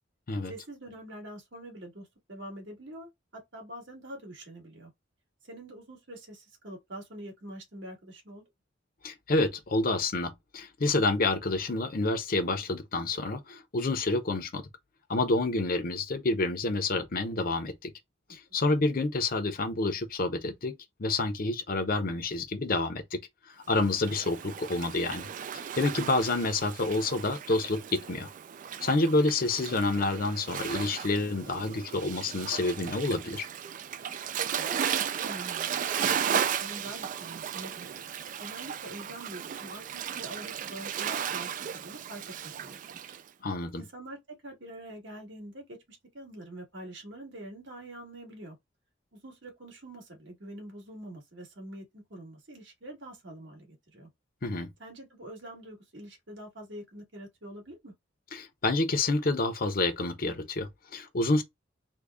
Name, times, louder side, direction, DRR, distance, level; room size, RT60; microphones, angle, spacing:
voice 1, 0.5-3.1 3.5-4.9 5.4-8.4 18.5-18.6 34.6-38.0 38.4-42.2 42.6-43.0 43.7-48.6 49.1-54.1 54.8-57.9, right 1 dB, 75° right, 1.9 m, -45 dB
voice 2, 9.0-14.7 15.1-17.9 18.3-20.7 21.0-23.2 23.5-25.3 25.7-28.3 28.8-33.5 43.4-43.8 54.4-54.7 58.3-61.4, left 2 dB, 50° left, 0.7 m, -28 dB
Waves surf, 23.8-43.2, right 8 dB, 45° right, 0.3 m, -35 dB
3.7 x 2.3 x 3.5 m
head